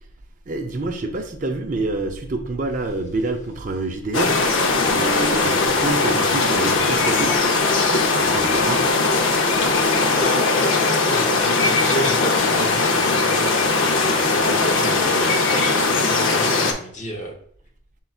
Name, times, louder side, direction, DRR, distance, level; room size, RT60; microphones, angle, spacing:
voice 1, 0.5-4.4 4.8-7.3 8.2-8.8, right 2 dB, 40° right, 4 dB, 0.5 m, -27 dB
sound 1, 4.1-16.7, left 3 dB, 75° left, 0.7 m, -19 dB
voice 2, 10.1-17.4, left 1 dB, 35° left, 2 dB, 0.7 m, -31 dB
5.6 x 3.7 x 2.3 m, 0.64 s
head